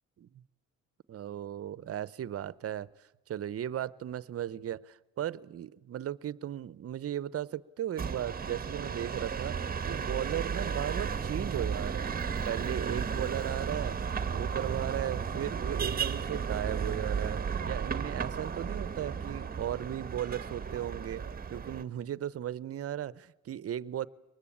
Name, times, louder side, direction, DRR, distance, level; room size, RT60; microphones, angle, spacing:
voice 1, 1.1-2.9 3.3-9.6 9.8-21.2 21.5-24.1, right 11 dB, 50° right, 20 dB, 0.7 m, -36 dB
sound 1, 8.0-21.8, right 6 dB, 30° right, 1.1 m, -34 dB
23.5 x 19.5 x 8.7 m, 1.0 s
cardioid pair, 90°, 30 cm